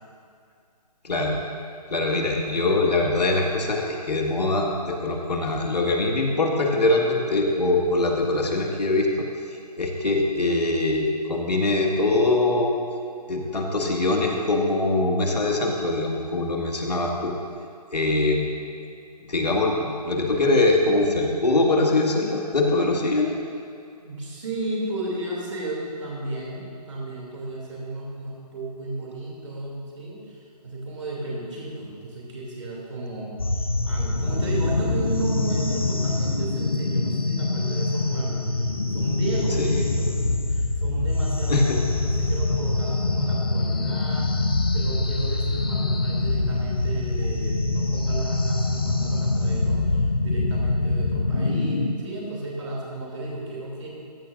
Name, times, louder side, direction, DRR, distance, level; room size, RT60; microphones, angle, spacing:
voice 1, 1.0-1.4 1.9-9.2 9.8-12.7 13.3-17.3 17.9-18.5 19.3-23.4 39.6-39.8 41.5-41.8, left 2 dB, 75° left, 0 dB, 2.0 m, -23 dB
voice 2, 24.0-30.4 30.6-33.3 33.8-38.6 38.9-44.3 44.7-53.9, right 2 dB, 45° right, -4 dB, 2.8 m, -33 dB
sound 1, 33.4-52.0, left 2 dB, 35° left, 0.6 m, -24 dB
14.5 x 12.0 x 2.6 m, 2.5 s
hypercardioid pair, 180°, 21 cm